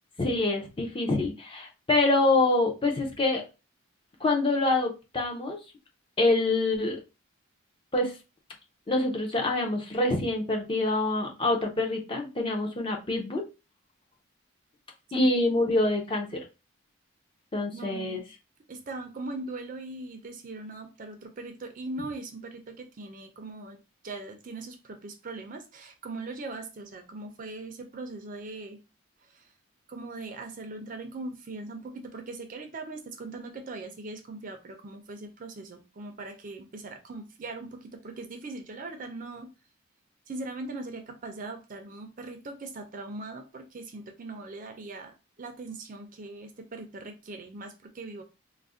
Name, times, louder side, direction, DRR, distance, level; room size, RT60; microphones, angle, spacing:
voice 1, 0.2-3.4 4.2-5.6 6.2-7.0 7.9-8.1 8.9-13.4 15.1-16.4 17.5-18.2, left 2 dB, 25° left, 1 dB, 0.5 m, -26 dB
voice 2, 17.7-18.2 18.7-23.8 24.0-28.8 29.3-29.4 29.9-39.5 40.3-48.2, right 2 dB, 35° right, 6 dB, 0.4 m, -40 dB
2.4 x 2.0 x 3.5 m, 0.29 s
head